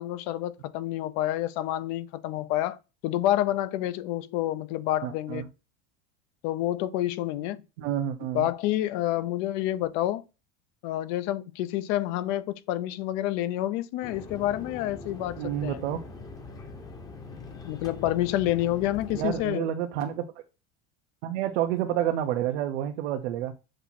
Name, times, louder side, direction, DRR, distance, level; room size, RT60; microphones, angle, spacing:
voice 1, 0.0-2.8 3.0-5.4 6.4-7.6 8.3-10.2 10.8-15.8 17.6-19.7, left 14 dB, 45° left, 0.6 m, -28 dB
voice 2, 5.0-5.4 7.8-8.5 15.4-16.1 19.1-20.2 21.2-23.5, right 11 dB, 90° right, 1.2 m, -29 dB
sound 1, 14.0-19.5, left 3 dB, 10° left, 0.9 m, -42 dB
7.8 x 3.0 x 4.3 m
cardioid pair, 180°, 33 cm